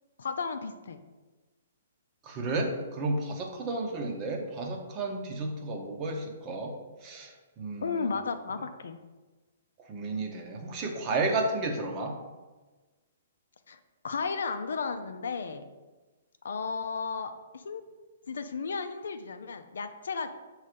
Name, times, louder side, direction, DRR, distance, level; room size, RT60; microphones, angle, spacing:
voice 1, 0.2-1.0 7.8-9.0 13.7-13.8 14.0-15.6 16.4-17.8 18.3-20.3, left 5 dB, 75° left, 8 dB, 0.5 m, -34 dB
voice 2, 2.2-6.7 7.0-8.1 9.9-12.2, right 2 dB, 30° right, 3 dB, 0.9 m, -32 dB
6.3 x 3.2 x 5.1 m, 1.2 s
hypercardioid pair, 130°, 0 cm